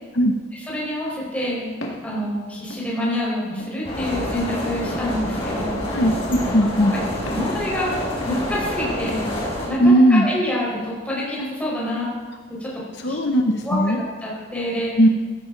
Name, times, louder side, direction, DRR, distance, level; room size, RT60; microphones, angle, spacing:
voice 1, 0.7-1.8 2.0-5.8 7.2-7.9 8.2-9.3 9.7-12.1 12.5-12.7 13.0-13.2 13.6-14.9, left 1 dB, 5° left, -6 dB, 4.6 m, -27 dB
Walk footsteps, 1.8-2.1 2.7-2.9 3.6-3.8 4.5-4.7 5.5-5.7 6.4-6.5 7.3-7.5 8.2-8.4 9.1-9.3, left 1 dB, 70° left, 2.1 m, -35 dB
sound 1, 3.8-9.7, left 1 dB, 30° left, 5.3 m, -27 dB
voice 2, 5.9-6.9 9.8-10.3 12.9-14.0 14.9-15.1, equal, 55° left, 3 dB, 0.9 m, -17 dB
16.0 x 14.0 x 3.9 m, 1.5 s
head